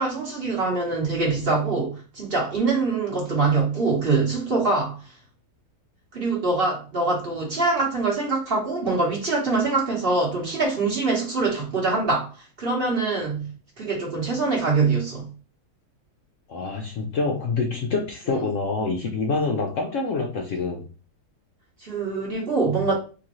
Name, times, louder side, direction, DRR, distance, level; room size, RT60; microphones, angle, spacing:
voice 1, 0.0-5.0 6.1-13.5 13.8-15.3 18.3-18.4 21.8-22.9, right 3 dB, 40° right, -2 dB, 1.2 m, -24 dB
voice 2, 16.5-20.9, left 3 dB, 65° left, 1 dB, 0.8 m, -26 dB
3.7 x 3.0 x 3.0 m, 0.36 s
omnidirectional pair, 1.7 m